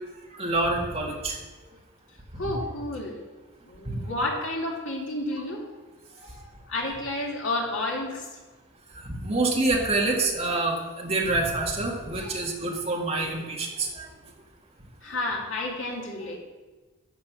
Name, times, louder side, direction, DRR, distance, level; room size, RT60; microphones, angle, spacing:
voice 1, 0.3-1.4 3.9-4.0 9.0-14.1, right 2 dB, 30° right, -1 dB, 1.9 m, -27 dB
voice 2, 2.3-3.2 3.6-5.7 6.1-8.4 12.2-12.5 15.0-16.4, left 2 dB, 65° left, -1 dB, 2.7 m, -31 dB
14.0 x 7.6 x 6.2 m, 1.2 s
head